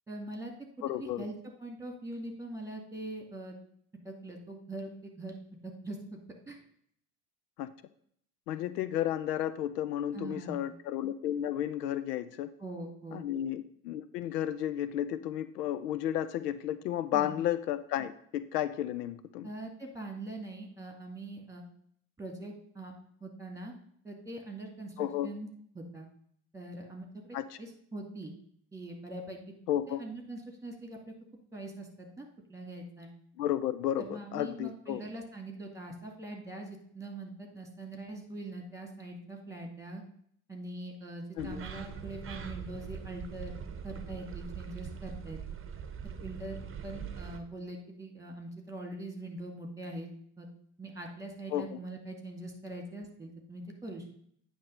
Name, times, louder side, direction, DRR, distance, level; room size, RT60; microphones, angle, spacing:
voice 1, 0.1-0.5 1.0-1.3 1.6-3.6 4.0-5.4 5.6-6.0 6.5-6.6 10.1-10.6 12.6-13.2 17.1-17.4 19.4-21.7 22.2-22.9 23.2-23.7 24.0-25.5 25.7-26.1 26.5-28.3 28.7-29.6 29.9-31.1 31.5-33.1 34.0-40.0 40.5-43.5 43.8-45.4 46.0-50.1 50.4-50.5 50.8-54.1, right 2 dB, 5° right, 2 dB, 2.2 m, -42 dB
voice 2, 0.8-1.3 7.6-7.7 8.5-12.5 13.1-19.5 25.0-25.3 27.3-27.6 29.7-30.0 33.4-35.1 41.4-41.6 51.5-51.8, left 11 dB, 80° left, 15 dB, 0.5 m, -33 dB
sound 1, 41.4-47.4, right 7 dB, 25° right, 1.0 m, -42 dB
9.2 x 3.2 x 6.4 m, 0.65 s
hypercardioid pair, 70°, 48 cm